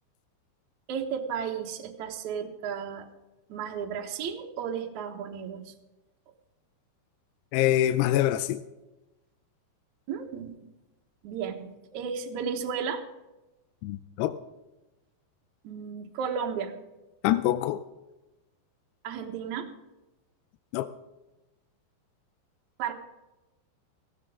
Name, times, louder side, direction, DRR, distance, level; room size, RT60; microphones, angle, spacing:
voice 1, 0.9-3.1 3.5-5.7 10.1-10.7 11.2-13.1 15.6-16.8 19.0-19.7 22.8-22.9, right 7 dB, 60° right, 2.0 m, -34 dB
voice 2, 7.5-8.6 13.8-14.3 17.2-17.8 20.7-20.9, left 13 dB, 80° left, 2.5 m, -25 dB
16.0 x 16.0 x 3.7 m
omnidirectional pair, 5.1 m